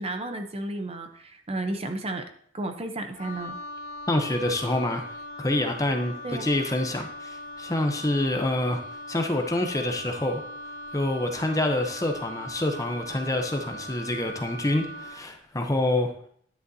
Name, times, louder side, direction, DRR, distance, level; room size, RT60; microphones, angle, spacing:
voice 1, 0.0-2.3 2.5-3.6 6.2-6.5, right 2 dB, 30° right, 7 dB, 0.7 m, -32 dB
Wind instrument woodwind instrument, 3.1-15.2, left 1 dB, 80° left, 2.3 m, -40 dB
voice 2, 4.1-5.0 5.4-6.1 6.4-8.8 9.1-10.4 10.9-16.1, left 1 dB, 15° left, 4 dB, 0.7 m, -26 dB
10.5 x 9.6 x 2.7 m, 0.62 s
head